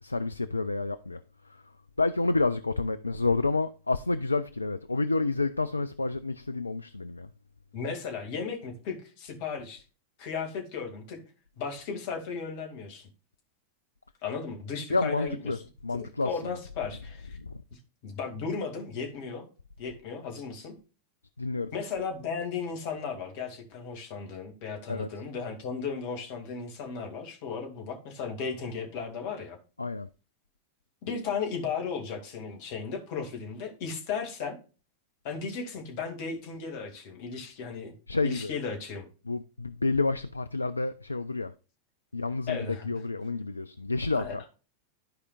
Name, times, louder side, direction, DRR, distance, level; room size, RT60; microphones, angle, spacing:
voice 1, 0.0-1.7 2.0-7.3 14.9-16.6 17.3-17.6 21.4-21.7 24.9-25.1 29.8-30.1 38.1-38.5 39.3-41.5 42.1-44.4, left 3 dB, 80° left, 0.3 m, -29 dB
voice 2, 7.7-9.8 10.2-11.2 11.6-13.1 14.2-15.5 16.0-17.4 18.0-19.5 19.8-20.7 21.7-29.6 31.0-34.6 35.2-37.9 38.2-39.1 42.5-42.8 44.1-44.5, left 5 dB, 50° left, 2.2 m, -35 dB
13.5 x 4.9 x 2.4 m
figure-of-eight pair, 90°, 0 cm